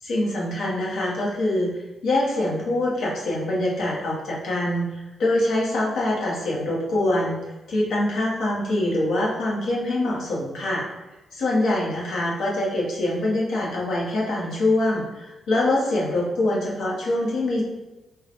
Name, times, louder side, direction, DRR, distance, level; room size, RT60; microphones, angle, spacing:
voice 1, 0.0-1.7 2.0-7.4 7.7-10.9 11.4-17.6, left 1 dB, 85° left, -4 dB, 0.9 m, -24 dB
3.7 x 2.1 x 2.9 m, 1.0 s
cardioid pair, 85°, 0 cm